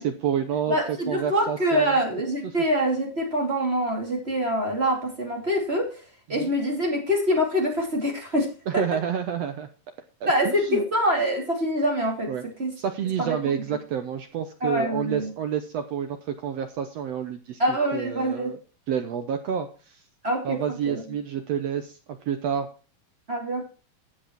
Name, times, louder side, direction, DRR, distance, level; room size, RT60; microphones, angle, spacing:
voice 1, 0.0-1.9 6.3-6.5 8.7-9.7 10.2-10.8 12.3-12.4 12.8-17.6 17.9-18.6 18.9-20.0 20.4-22.7, right 8 dB, 75° right, 7 dB, 1.5 m, -29 dB
voice 2, 0.7-6.0 6.3-8.8 10.3-12.7 13.2-13.4 14.6-15.3 17.6-18.5 20.2-21.0 23.3-23.7, equal, 20° right, 1 dB, 2.4 m, -25 dB
12.5 x 7.7 x 4.6 m, 0.36 s
omnidirectional pair, 4.1 m